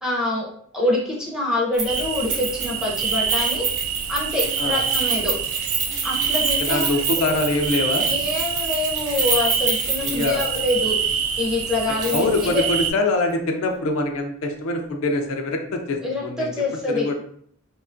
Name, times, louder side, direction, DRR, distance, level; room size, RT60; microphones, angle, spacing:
voice 1, 0.0-0.5 0.7-3.7 4.1-5.3 6.0-6.8 8.1-12.6 16.0-17.1, left 2 dB, 5° right, -4 dB, 0.5 m, -25 dB
Keys jangling, 1.8-10.9 11.2-11.3 12.0-12.5 12.8-12.9, right 4 dB, 85° right, 0.8 m, -28 dB
sound 1, 1.9-12.9, right 7 dB, 70° right, 0.3 m, -26 dB
voice 2, 6.7-8.1 10.0-10.4 12.1-16.5 16.9-17.1, left 2 dB, 70° left, 3 dB, 0.4 m, -24 dB
2.7 x 2.3 x 2.5 m, 0.64 s
head